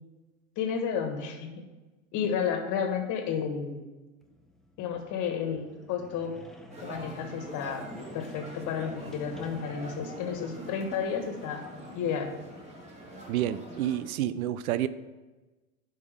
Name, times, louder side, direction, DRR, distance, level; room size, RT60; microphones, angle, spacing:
voice 1, 0.6-1.5 2.1-3.8 4.8-6.3 6.8-7.8 8.1-11.6 11.9-12.3, left 7 dB, 45° left, 5 dB, 1.5 m, -31 dB
sound 1, 4.2-14.0, left 1 dB, ahead, 0.3 m, -49 dB
sound 2, 6.7-14.0, right 1 dB, 15° right, 2.1 m, -45 dB
voice 2, 13.3-14.9, right 12 dB, 75° right, 15 dB, 0.6 m, -29 dB
11.0 x 5.4 x 3.5 m, 1.2 s
hypercardioid pair, 105°, 43 cm